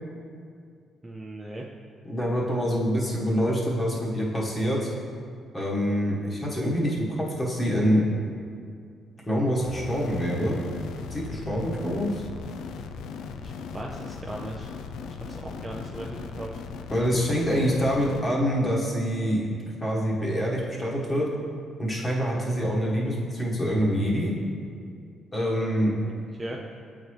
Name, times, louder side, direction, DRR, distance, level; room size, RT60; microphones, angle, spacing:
voice 1, 1.0-1.7 13.4-14.7 15.1-16.6 26.0-26.1 26.4-26.6, right 1 dB, 20° right, -1 dB, 0.4 m, -38 dB
voice 2, 2.0-4.9 5.5-8.0 9.3-10.6 11.1-12.2 16.9-19.5 19.8-21.3 21.8-24.4 25.3-26.0, equal, 30° left, -5 dB, 1.4 m, -25 dB
sound 1, 9.6-18.2, left 5 dB, 85° left, 0.3 m, -38 dB
8.2 x 4.0 x 3.2 m, 2.3 s
cardioid pair, 90°, 0 cm